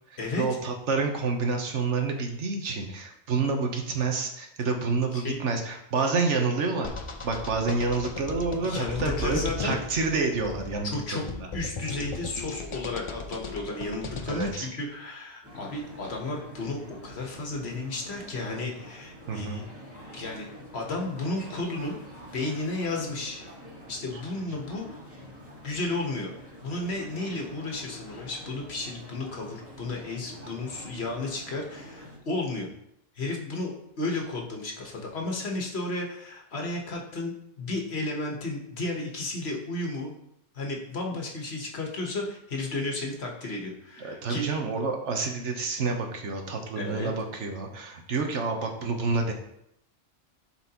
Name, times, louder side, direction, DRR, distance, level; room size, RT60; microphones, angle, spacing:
voice 1, 0.1-6.9 7.2-11.5 14.3-14.7 19.3-19.6 44.0-49.3, right 4 dB, 80° right, 3 dB, 1.4 m, -28 dB
sound 1, 6.8-14.5, left 4 dB, 35° left, 0.5 m, -36 dB
voice 2, 8.6-9.8 10.8-11.2 11.5-19.6 20.1-20.5 20.7-22.0 22.3-23.4 23.9-24.9 25.6-26.3 26.6-32.7 33.1-40.1 40.5-44.5 46.7-47.1, left 2 dB, 60° left, 0 dB, 1.5 m, -33 dB
sound 2, 15.4-32.2, equal, 10° right, 1.6 m, -46 dB
11.5 x 4.5 x 2.9 m, 0.77 s
omnidirectional pair, 1.2 m